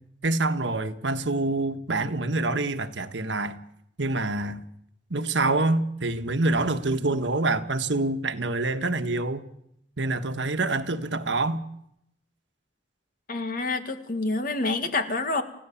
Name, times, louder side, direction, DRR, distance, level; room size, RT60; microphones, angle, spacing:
voice 1, 0.2-3.6 4.0-4.6 5.1-9.4 10.0-11.6, right 2 dB, 80° right, 1.4 m, -26 dB
voice 2, 13.3-15.4, left 3 dB, 50° left, 2.0 m, -27 dB
30.0 x 15.0 x 7.2 m
head